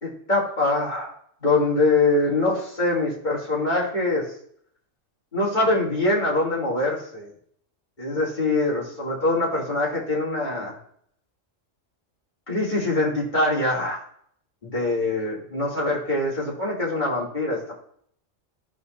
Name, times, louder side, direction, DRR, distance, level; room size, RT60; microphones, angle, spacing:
voice 1, 0.0-1.1 1.4-4.2 5.3-7.3 8.0-10.7 12.5-14.0 14.6-17.7, left 2 dB, 35° left, -6 dB, 3.1 m, -23 dB
15.5 x 5.3 x 2.7 m, 0.64 s
omnidirectional pair, 1.3 m